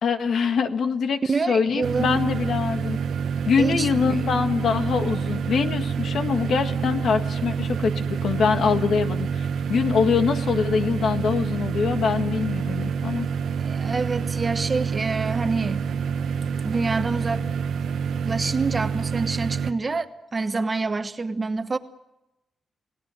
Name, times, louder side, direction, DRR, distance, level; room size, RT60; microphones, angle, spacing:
voice 1, 0.0-3.0 3.5-13.3, left 6 dB, 65° left, 7 dB, 1.7 m, -24 dB
voice 2, 1.3-2.3 3.6-4.2 13.6-15.9 16.6-17.5 18.2-21.8, right 4 dB, 25° right, 8 dB, 1.2 m, -27 dB
sound 1, 1.8-19.7, right 6 dB, 90° right, 1.1 m, -27 dB
29.5 x 19.0 x 7.8 m, 0.94 s
wide cardioid pair, 165°, 0 cm